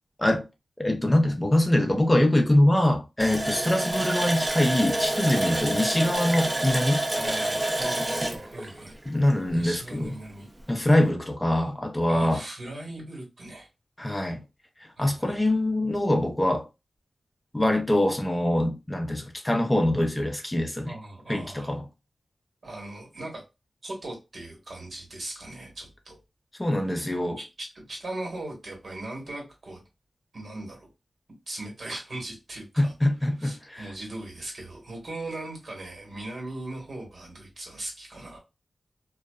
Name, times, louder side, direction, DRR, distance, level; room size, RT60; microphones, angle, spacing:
voice 1, 0.8-7.0 9.1-10.1 10.7-12.4 14.0-14.4 15.0-16.7 17.5-20.9 21.3-21.8 26.6-27.4 32.8-33.9, left 1 dB, 20° left, 0.5 m, -24 dB
Water tap faucet, 3.2-9.7 10.0-10.1 10.6-10.7, right 1 dB, 25° right, 0.6 m, -28 dB
voice 2, 5.3-5.6 7.1-9.0 9.5-10.5 12.1-13.7 15.0-15.4 20.8-21.8 22.6-23.4 23.8-26.2 27.4-27.5 27.7-29.8 30.3-30.9 31.5-32.9 33.4-38.4, right 2 dB, 65° right, 1.3 m, -39 dB
2.6 x 2.3 x 2.3 m
cardioid pair, 60°, 0 cm